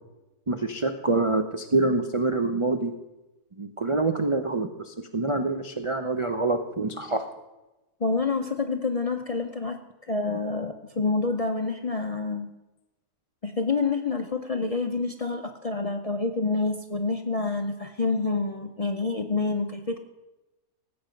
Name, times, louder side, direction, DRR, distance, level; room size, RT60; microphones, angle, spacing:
voice 1, 0.5-2.9 3.6-7.2, right 2 dB, 55° right, 6 dB, 0.3 m, -26 dB
voice 2, 8.0-9.8 10.1-12.5 13.4-20.0, left 3 dB, 55° left, 5 dB, 0.4 m, -27 dB
17.5 x 7.9 x 5.2 m, 1.0 s
omnidirectional pair, 1.7 m